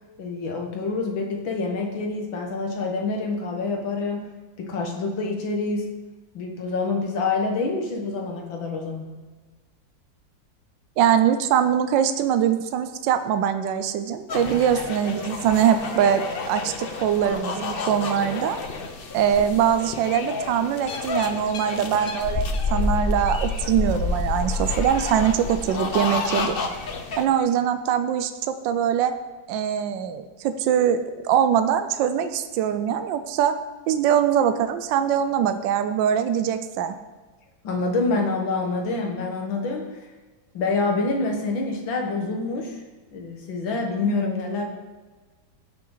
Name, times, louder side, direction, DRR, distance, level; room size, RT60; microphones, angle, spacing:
voice 1, 0.2-4.3 4.6-5.9 6.3-9.1 37.6-39.9 40.5-42.8 43.1-44.7, left 3 dB, 85° left, 2 dB, 2.2 m, -26 dB
voice 2, 11.0-18.6 19.1-26.5 27.2-29.1 29.5-31.0 31.2-33.5 33.9-36.9, right 9 dB, 75° right, 9 dB, 1.3 m, -22 dB
sound 1, 14.3-27.2, left 3 dB, 50° left, 0.6 m, -29 dB
17.5 x 6.1 x 3.9 m, 1.3 s
omnidirectional pair, 2.1 m